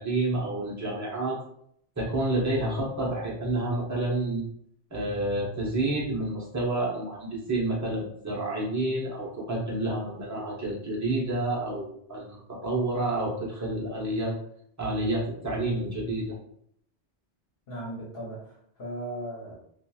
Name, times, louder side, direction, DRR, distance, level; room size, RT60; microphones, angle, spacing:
voice 1, 0.0-1.4 2.0-4.5 4.9-14.4 14.8-16.3, right 2 dB, 20° right, -4 dB, 0.7 m, -29 dB
voice 2, 17.7-19.6, right 1 dB, 60° left, -4 dB, 1.0 m, -37 dB
2.9 x 2.5 x 2.3 m, 0.68 s
omnidirectional pair, 1.1 m